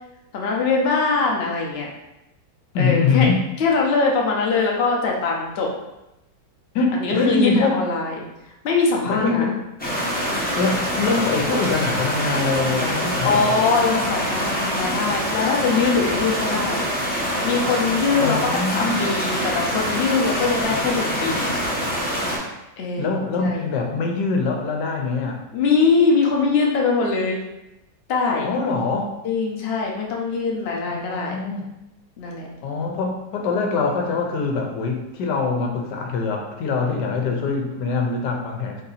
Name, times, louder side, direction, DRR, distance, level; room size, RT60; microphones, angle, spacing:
voice 1, 0.3-1.9 2.8-5.7 6.9-8.3 8.6-9.5 13.2-16.9 17.4-18.4 18.7-21.5 22.8-23.6 25.5-27.4 28.1-28.5 29.2-31.4 32.2-32.5 36.8-37.3, left 4 dB, 50° left, -1 dB, 0.8 m, -22 dB
voice 2, 2.7-3.4 6.7-7.8 9.0-9.5 10.5-13.6 18.2-19.0 23.0-25.4 28.4-29.1 30.9-31.7 32.6-38.8, left 4 dB, 85° left, 2 dB, 1.3 m, -23 dB
sound 1, 9.8-22.4, equal, 10° left, 0.5 m, -25 dB
4.0 x 2.7 x 4.0 m, 0.93 s
omnidirectional pair, 1.8 m